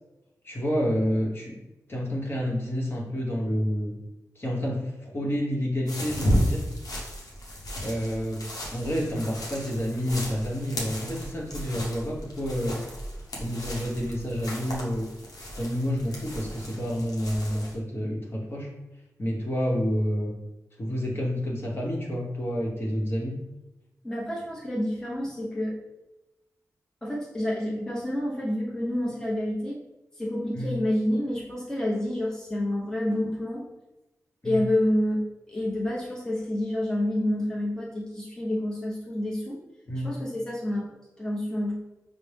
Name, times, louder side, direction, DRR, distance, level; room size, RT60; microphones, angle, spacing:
voice 1, 0.4-1.5 1.9-3.9 4.4-6.6 7.8-12.8 13.4-15.1 15.6-18.7 19.2-20.3 20.8-23.3 30.5-30.7 34.4-34.6 39.9-40.1, equal, 40° left, -2 dB, 1.0 m, -29 dB
sound 1, 5.9-17.8, equal, 90° left, 0.8 m, -33 dB
voice 2, 24.0-25.8 27.0-29.8 30.1-33.6 34.4-39.6 40.0-41.7, left 1 dB, 10° left, -5 dB, 0.8 m, -28 dB
5.0 x 2.1 x 3.3 m, 0.98 s
wide cardioid pair, 70°, 6 cm